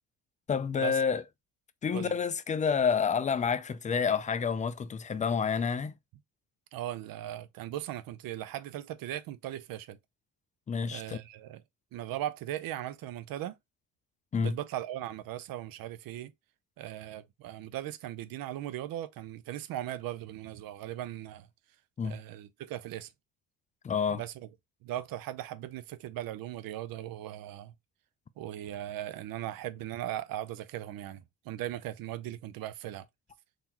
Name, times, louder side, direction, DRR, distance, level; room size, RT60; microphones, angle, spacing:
voice 1, 0.5-1.2 1.8-5.9 10.7-11.2 14.3-14.5 22.0-22.2 23.8-24.2, left 6 dB, 20° left, 0.3 m, -29 dB
voice 2, 6.7-10.0 10.9-11.6 11.9-13.6 14.4-16.3 16.8-21.5 22.0-23.1 24.1-24.5 24.8-27.7 28.4-33.1, right 13 dB, 75° right, 0.6 m, -38 dB
3.8 x 2.8 x 2.9 m
cardioid pair, 105°, 35 cm